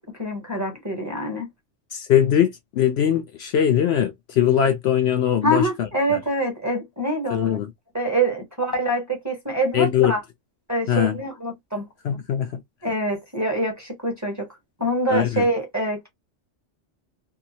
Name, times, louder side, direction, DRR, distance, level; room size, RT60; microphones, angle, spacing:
voice 1, 0.0-1.5 5.4-7.6 7.9-10.2 10.7-11.9 12.8-14.5 14.8-16.1, right 1 dB, 15° right, 0.8 m, -25 dB
voice 2, 1.9-6.2 7.3-7.7 9.7-10.1 10.9-11.2 12.0-12.6 15.1-15.5, left 9 dB, 65° left, 0.8 m, -21 dB
2.8 x 2.2 x 2.7 m
omnidirectional pair, 1.3 m